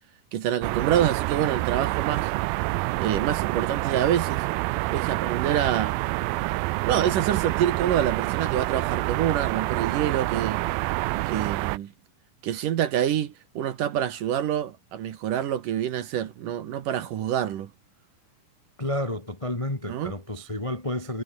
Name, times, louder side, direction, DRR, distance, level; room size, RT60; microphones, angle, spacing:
voice 1, 0.3-2.3 3.0-4.5 4.9-6.0 6.9-10.7 11.3-11.9 12.4-17.7 19.9-20.1, right 10 dB, 65° right, 2.7 m, -26 dB
sound 1, 0.6-11.8, right 21 dB, 85° right, 2.0 m, -27 dB
voice 2, 18.8-21.2, left 1 dB, 30° left, 0.5 m, -30 dB
omnidirectional pair, 4.7 m